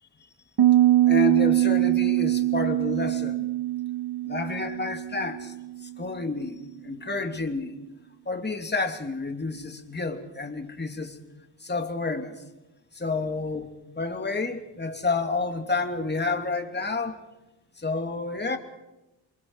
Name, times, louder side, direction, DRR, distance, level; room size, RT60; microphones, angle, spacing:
Piano, 0.6-6.2, right 14 dB, 70° right, 2.0 m, -23 dB
voice 1, 1.1-3.5 4.2-5.5 5.8-7.7 8.3-11.2 11.6-12.4 12.9-13.7 14.0-17.2 17.8-18.6, left 3 dB, 20° left, 4 dB, 2.9 m, -30 dB
29.0 x 24.5 x 4.9 m, 0.98 s
cardioid pair, 115°, 46 cm